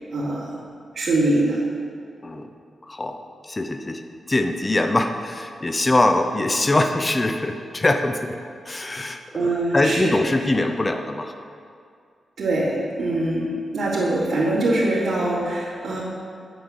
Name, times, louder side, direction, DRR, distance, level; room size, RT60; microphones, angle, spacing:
voice 1, 0.1-0.5 0.9-1.6 9.3-10.1 12.4-12.7 13.0-16.0, right 2 dB, 60° right, -11 dB, 3.7 m, -23 dB
voice 2, 2.9-3.2 3.4-8.4 8.6-11.3, left 2 dB, 20° left, 6 dB, 0.8 m, -23 dB
10.5 x 8.9 x 8.0 m, 2.3 s
wide cardioid pair, 160°, 0 cm